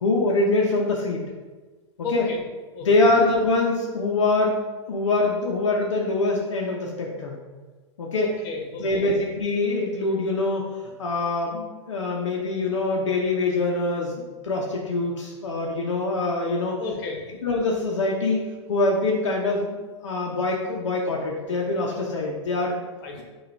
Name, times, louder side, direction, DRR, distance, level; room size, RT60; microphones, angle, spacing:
voice 1, 0.0-1.2 2.1-2.2 2.8-4.6 4.9-7.4 8.0-8.3 8.8-10.6 11.0-16.8 17.4-22.9, left 2 dB, 80° left, -2 dB, 0.6 m, -24 dB
voice 2, 2.0-2.4 2.7-2.9 8.1-9.1 16.8-17.2 23.0-23.2, left 5 dB, 50° left, 1 dB, 1.1 m, -32 dB
5.7 x 2.4 x 3.2 m, 1.3 s
hypercardioid pair, 105°, 15 cm